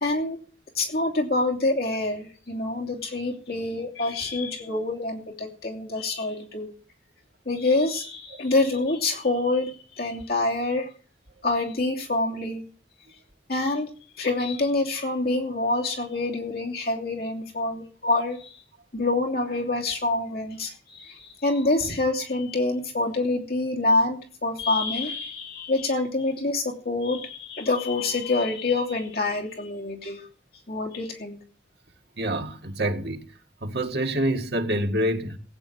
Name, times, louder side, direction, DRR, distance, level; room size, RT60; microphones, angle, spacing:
voice 1, 0.0-0.4 0.7-6.7 7.5-10.9 11.4-12.6 13.5-13.9 14.2-18.6 18.9-30.2 30.7-31.4, left 2 dB, 55° left, 2.9 m, -26 dB
voice 2, 32.2-33.3 33.6-35.4, right 1 dB, 65° right, 2.0 m, -26 dB
18.0 x 9.0 x 5.9 m
head